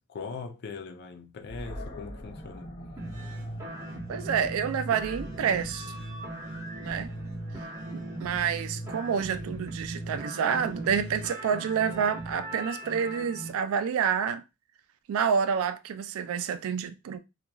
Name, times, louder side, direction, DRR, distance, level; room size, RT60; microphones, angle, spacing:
voice 1, 0.1-2.7, left 4 dB, 50° left, 0.4 m, -40 dB
Animal, 1.5-8.6, equal, 30° left, 0.8 m, -45 dB
sound 1, 3.0-13.5, right 1 dB, 15° right, 0.8 m, -38 dB
voice 2, 4.1-5.9 6.8-7.1 7.9-14.4 15.1-17.2, right 7 dB, 70° right, 0.3 m, -28 dB
2.9 x 2.3 x 2.3 m
head